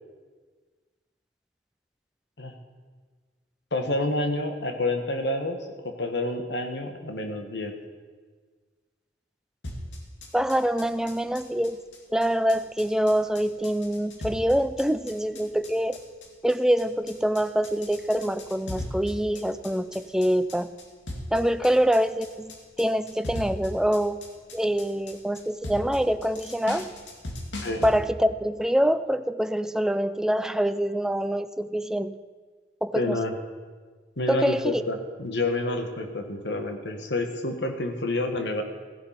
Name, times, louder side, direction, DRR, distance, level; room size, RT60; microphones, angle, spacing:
voice 1, 3.7-7.8 21.6-21.7 27.6-27.8 32.9-33.3 34.2-38.6, left 2 dB, 70° left, 5 dB, 1.5 m, -28 dB
sound 1, 9.6-27.9, left 1 dB, 85° left, 2.2 m, -38 dB
voice 2, 10.3-11.8 12.1-16.0 16.4-20.7 21.3-24.2 24.5-26.9 27.8-32.2 32.8-33.2 34.3-34.8, equal, 5° right, 12 dB, 0.4 m, -25 dB
16.0 x 11.0 x 5.8 m, 1.5 s
head